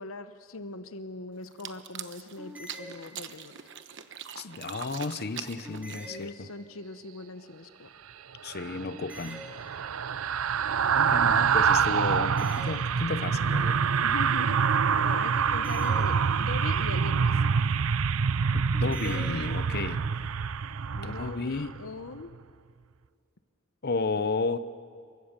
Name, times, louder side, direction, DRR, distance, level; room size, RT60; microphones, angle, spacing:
voice 1, 0.0-3.5 6.1-7.9 14.0-17.4 19.0-19.6 21.0-22.3, left 3 dB, 80° left, 0.9 m, -41 dB
sound 1, 1.5-6.3, right 8 dB, 60° right, 1.1 m, -42 dB
sound 2, 2.4-3.7 5.6-6.9 8.9-10.2 12.2-13.5 15.5-16.8 18.7-19.7, left 1 dB, 5° right, 2.3 m, -47 dB
voice 2, 4.4-6.5 8.4-9.4 10.9-13.8 18.5-20.1 20.9-21.7 23.8-24.6, left 3 dB, 50° left, 0.8 m, -33 dB
sound 3, 8.5-21.8 22.2-22.4, right 6 dB, 85° right, 0.6 m, -26 dB
28.0 x 24.0 x 6.7 m
head